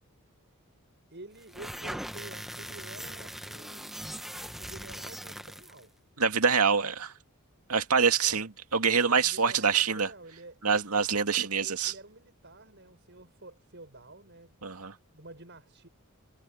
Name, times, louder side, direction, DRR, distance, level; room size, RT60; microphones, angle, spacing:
voice 1, 1.1-4.0 4.6-5.9 8.2-8.5 8.9-10.6 11.3-14.7 15.1-15.9, right 2 dB, 50° right, 6.8 m, -49 dB
sound 1, 1.4-5.8, equal, ahead, 0.8 m, -40 dB
voice 2, 6.2-7.1 7.7-10.1 10.6-11.9 14.6-14.9, right 6 dB, 85° right, 2.2 m, -25 dB
head